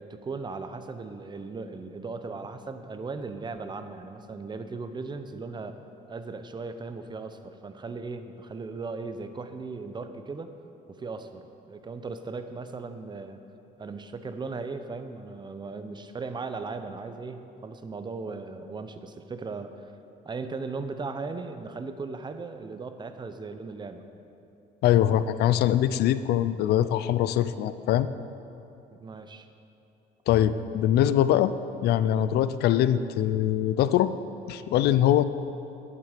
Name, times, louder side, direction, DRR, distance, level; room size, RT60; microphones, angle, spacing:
voice 1, 0.0-5.8 6.1-10.5 10.9-13.4 13.8-19.8 20.2-24.1 29.0-29.5, right 4 dB, 25° right, 9 dB, 0.7 m, -37 dB
voice 2, 24.8-28.1 30.3-31.5 31.8-34.1 34.5-35.2, left 11 dB, 75° left, 14 dB, 0.5 m, -23 dB
11.0 x 11.0 x 5.0 m, 2.8 s
cardioid pair, 110°, 17 cm